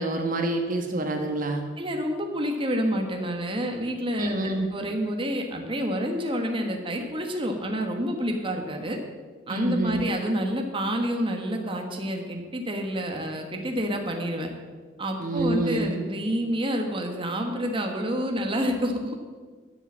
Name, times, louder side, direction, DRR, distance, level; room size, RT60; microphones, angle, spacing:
voice 1, 0.0-1.6 4.2-4.7 9.5-10.0 15.2-16.0, right 2 dB, 45° right, 4 dB, 1.3 m, -27 dB
voice 2, 1.8-4.4 4.7-9.0 9.5-14.5 15.0-19.2, equal, 30° right, 3 dB, 1.3 m, -28 dB
12.0 x 7.8 x 7.3 m, 1.5 s
head